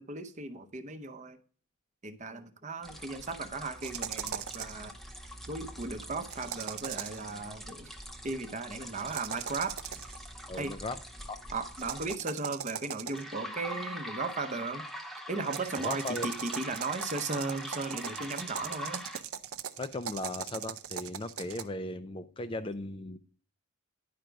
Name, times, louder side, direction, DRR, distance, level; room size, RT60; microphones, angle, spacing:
voice 1, 0.0-1.4 2.0-4.9 5.5-7.9 8.2-9.8 10.6-10.7 11.5-14.9 15.3-19.0, right 3 dB, 30° right, 0.7 m, -36 dB
sound 1, 2.8-12.1 13.1-19.2, equal, ahead, 0.7 m, -44 dB
sound 2, 3.8-4.8 6.3-7.3 8.9-10.2 11.8-13.4 15.4-21.6, right 9 dB, 75° right, 0.6 m, -39 dB
voice 2, 10.5-11.0 11.3-11.4 15.8-16.3 19.8-23.2, left 2 dB, 25° left, 0.4 m, -37 dB
10.5 x 5.1 x 4.5 m
head